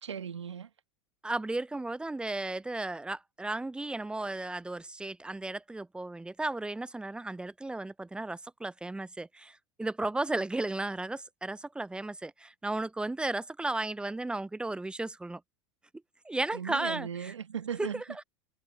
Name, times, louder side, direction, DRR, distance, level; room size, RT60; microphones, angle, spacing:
voice 1, 0.0-0.7 16.5-18.2, right 8 dB, 85° right, 1.4 m, -38 dB
voice 2, 1.2-15.4 16.2-17.3 17.8-18.0, right 2 dB, 5° right, 0.5 m, -34 dB
hypercardioid pair, 85°, 15 cm